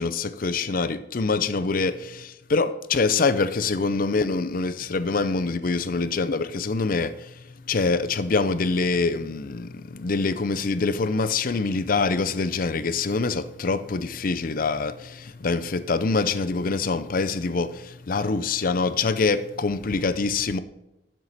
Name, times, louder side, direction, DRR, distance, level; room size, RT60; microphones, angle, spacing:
voice 1, 0.0-7.3 7.7-20.6, left 4 dB, 45° left, 0.5 m, -25 dB
12.0 x 7.5 x 4.1 m
head